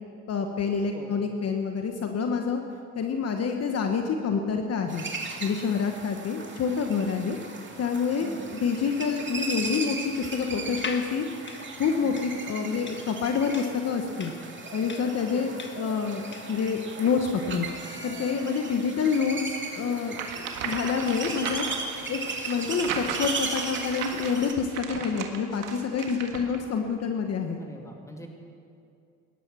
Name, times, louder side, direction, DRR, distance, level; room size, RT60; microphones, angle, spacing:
voice 1, 0.3-2.6 2.9-5.0 5.4-7.4 7.8-11.3 11.8-14.3 14.7-17.7 18.0-21.6 22.1-22.2 22.5-27.6, left 5 dB, 50° left, 4 dB, 1.2 m, -27 dB
sound 1, 4.9-24.5, right 3 dB, 35° right, 2.4 m, -37 dB
sound 2, 10.7-16.6, left 4 dB, 35° left, 1.5 m, -41 dB
sound 3, 20.1-26.6, right 7 dB, 80° right, 1.6 m, -36 dB
voice 2, 27.6-28.3, left 1 dB, 10° left, 1 dB, 2.7 m, -44 dB
18.0 x 12.0 x 6.2 m, 2.4 s
cardioid pair, 90°, 32 cm